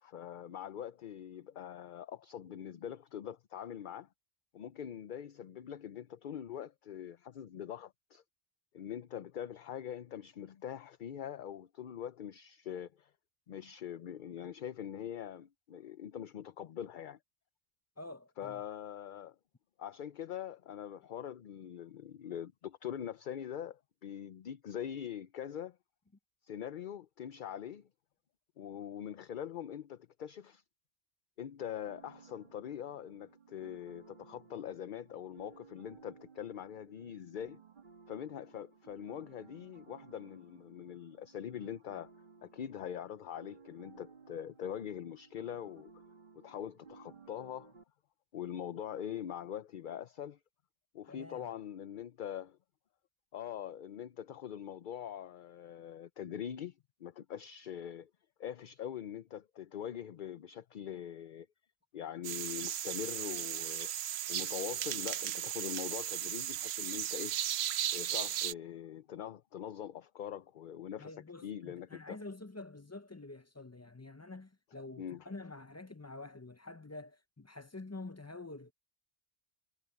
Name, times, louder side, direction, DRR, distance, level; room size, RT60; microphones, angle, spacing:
voice 1, 0.0-4.1 4.5-8.2 8.7-13.1 13.5-17.2 18.4-19.4 19.8-25.8 26.4-27.9 28.6-30.6 31.4-37.6 38.1-42.1 42.4-45.9 46.4-47.7 48.3-50.4 50.9-52.6 53.3-58.1 58.4-61.5 61.9-63.9 64.3-67.4 67.9-71.1 71.4-72.2 75.0-75.2, left 9 dB, 60° left, 0.7 m, -43 dB
voice 2, 18.0-18.6 51.1-51.5 71.0-78.7, left 2 dB, 20° left, 0.4 m, -47 dB
sound 1, 31.9-47.8, right 5 dB, 50° right, 1.6 m, -58 dB
sound 2, 62.2-68.5, right 11 dB, 90° right, 0.9 m, -36 dB
omnidirectional pair, 1.0 m